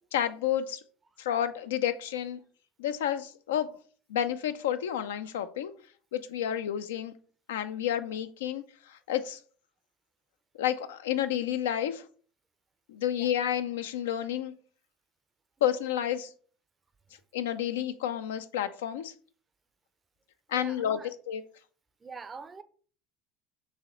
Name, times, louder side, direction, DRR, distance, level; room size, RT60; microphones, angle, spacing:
voice 1, 0.1-0.8 1.2-2.4 2.8-3.8 4.1-5.7 6.1-7.1 7.5-9.4 10.6-12.0 12.9-14.5 15.6-16.3 17.3-19.1 20.5-21.0 21.3-21.4, left 10 dB, 75° left, 0.3 m, -30 dB
voice 2, 20.5-21.1 22.0-22.6, right 5 dB, 25° right, 0.5 m, -44 dB
4.7 x 3.1 x 3.0 m
hypercardioid pair, 70°, 0 cm